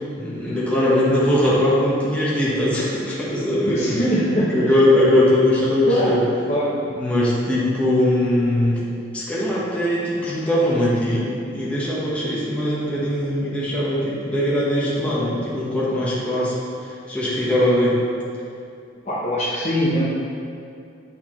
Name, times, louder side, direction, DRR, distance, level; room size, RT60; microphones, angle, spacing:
voice 1, 0.1-4.1 4.5-6.2 6.9-16.6 16.8-18.0, left 1 dB, 5° left, -8 dB, 0.9 m, -21 dB
voice 2, 3.5-4.5 5.8-6.7 19.0-20.0, equal, 35° left, -7 dB, 0.7 m, -22 dB
8.5 x 4.0 x 3.0 m, 2.5 s
head